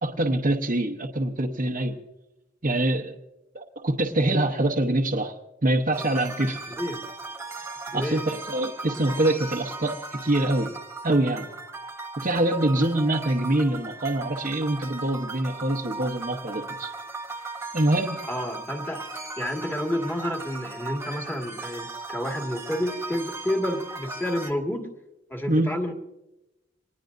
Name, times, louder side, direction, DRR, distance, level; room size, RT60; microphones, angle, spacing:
voice 1, 0.0-2.0 2.6-3.1 3.5-5.3 5.6-6.7 7.9-10.7 11.0-11.5 12.2-16.9 17.7-18.3 25.5-25.7, right 1 dB, 45° right, 0 dB, 1.0 m, -25 dB
sound 1, 5.9-24.5, right 3 dB, 15° right, 0.8 m, -37 dB
voice 2, 6.7-7.1 7.9-8.2 18.3-19.0 19.4-24.9 25.3-25.9, equal, 10° left, 1 dB, 1.9 m, -30 dB
25.0 x 19.5 x 2.6 m, 0.95 s
head